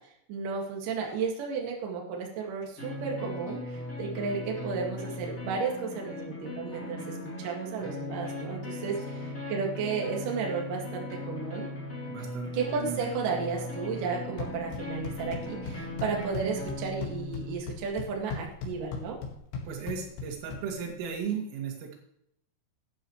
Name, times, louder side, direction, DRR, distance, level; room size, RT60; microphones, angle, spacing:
voice 1, 0.3-11.7 12.5-19.2, right 5 dB, 50° right, 0 dB, 3.1 m, -33 dB
sound 1, 2.8-17.6, left 1 dB, 20° left, 2.8 m, -38 dB
voice 2, 12.1-12.5 12.8-13.0 19.7-22.0, right 7 dB, 85° right, 1 dB, 4.8 m, -35 dB
sound 2, 14.2-21.2, left 4 dB, 80° left, 4.5 m, -39 dB
13.0 x 11.0 x 3.2 m, 0.76 s
omnidirectional pair, 5.7 m